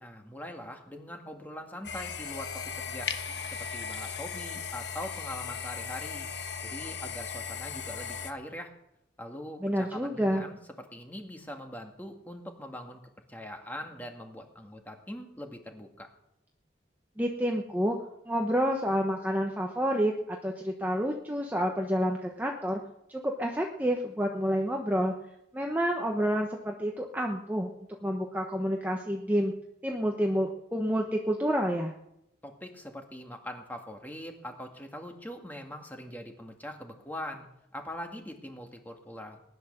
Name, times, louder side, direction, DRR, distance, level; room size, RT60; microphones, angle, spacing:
voice 1, 0.0-3.1 3.6-6.3 6.6-8.7 9.2-10.6 10.9-13.0 13.3-16.1 32.4-37.5 37.7-39.4, left 1 dB, 10° left, 3 dB, 1.8 m, -42 dB
sound 1, 1.8-8.3, left 6 dB, 65° left, 1.2 m, -37 dB
voice 2, 9.6-10.4 17.2-18.0 18.3-22.8 23.1-25.1 25.5-27.7 28.0-29.5 29.8-31.9, equal, 10° right, 1 dB, 1.0 m, -29 dB
19.5 x 11.0 x 6.7 m, 0.84 s
head